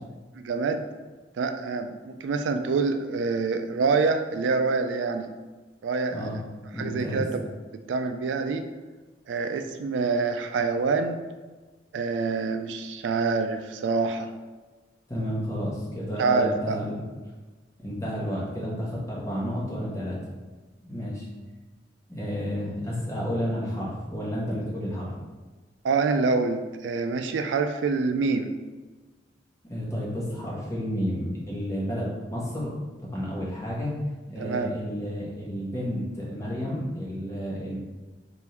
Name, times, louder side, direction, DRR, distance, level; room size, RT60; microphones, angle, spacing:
voice 1, 0.4-0.9 1.3-5.3 5.8-6.4 6.8-7.5 7.9-8.6 9.3-11.2 11.9-14.3 16.2-16.8 25.8-28.5 34.4-34.7, right 4 dB, 85° right, 7 dB, 0.3 m, -26 dB
voice 2, 6.1-6.4 6.7-7.2 15.1-17.0 17.8-20.2 20.8-21.3 22.1-25.1 29.6-32.7 33.0-33.9 34.3-37.8, equal, 15° left, -6 dB, 1.1 m, -31 dB
3.5 x 2.6 x 4.4 m, 1.3 s
head